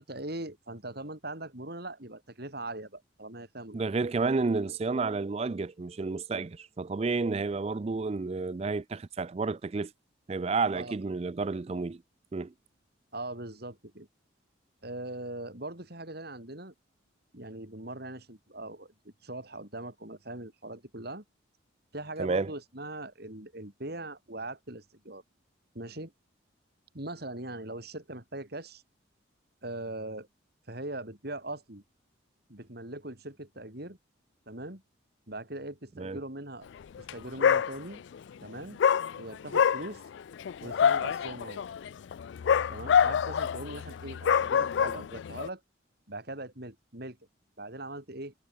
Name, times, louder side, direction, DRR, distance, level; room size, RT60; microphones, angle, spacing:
voice 1, 0.0-3.8 10.8-11.0 13.1-14.1 14.8-16.7 17.3-21.2 21.9-25.2 25.8-26.1 26.9-28.8 29.6-30.3 30.7-31.8 32.5-34.0 34.5-34.8 35.3-36.7 37.0-38.0 38.4-38.8 39.2-40.1 40.6-41.6 42.7-45.6 46.1-47.2 47.6-48.3, right 2 dB, 50° right, 3.5 m, -41 dB
voice 2, 3.7-9.9 10.3-12.0 12.3-12.5 22.2-22.5 36.0-36.2, right 4 dB, 30° right, 0.4 m, -31 dB
Dog, 37.0-37.1 37.4-38.2 38.8-45.5, left 7 dB, 65° left, 0.3 m, -26 dB
head